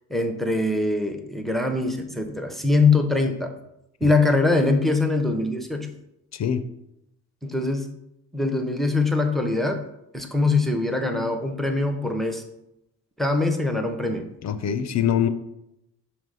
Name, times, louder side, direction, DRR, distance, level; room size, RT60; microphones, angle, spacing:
voice 1, 0.1-3.6 4.0-5.9 7.4-7.9 8.3-9.9 10.1-12.4 13.2-14.3, left 3 dB, ahead, 5 dB, 0.8 m, -23 dB
voice 2, 6.3-6.7 14.4-15.3, left 9 dB, 35° left, 11 dB, 0.6 m, -24 dB
6.1 x 2.9 x 5.3 m, 0.84 s
figure-of-eight pair, 40°, 49 cm